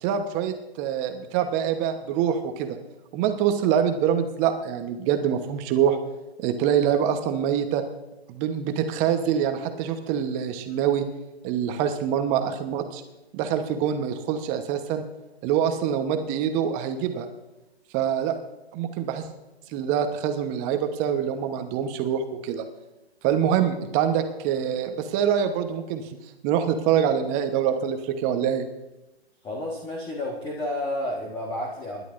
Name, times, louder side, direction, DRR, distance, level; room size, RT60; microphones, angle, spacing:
voice 1, 0.0-2.8 3.1-6.0 6.4-7.8 8.3-11.0 11.4-13.0 13.3-15.0 15.4-17.3 17.9-18.4 18.7-19.3 19.7-22.6 23.2-26.1 26.4-28.7, right 9 dB, 20° right, 7 dB, 1.0 m, -25 dB
voice 2, 29.4-32.0, left 1 dB, 15° left, -1 dB, 1.5 m, -31 dB
26.0 x 11.0 x 2.6 m, 1.0 s
hypercardioid pair, 135°, 33 cm